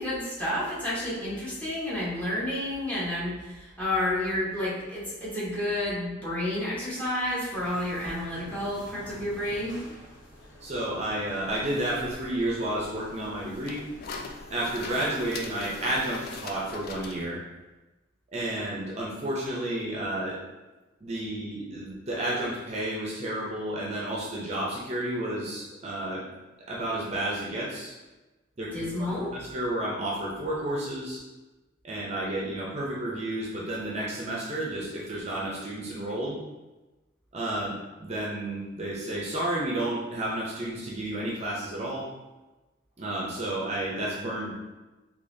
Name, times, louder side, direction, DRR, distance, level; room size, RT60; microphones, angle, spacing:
voice 1, 0.0-9.8 28.7-29.3, left 1 dB, 10° left, -8 dB, 1.0 m, -30 dB
sound 1, 7.5-14.4, left 1 dB, 75° left, 0.8 m, -49 dB
voice 2, 10.6-13.8 14.5-17.4 18.3-20.4 21.0-26.3 26.7-27.9 28.6-28.9 29.3-31.2 31.8-36.4 37.3-42.1 43.0-44.5, right 1 dB, 35° right, -4 dB, 0.5 m, -31 dB
sound 2, 11.5-17.3, left 3 dB, 50° left, 0.3 m, -41 dB
3.9 x 2.8 x 2.6 m, 1.1 s
head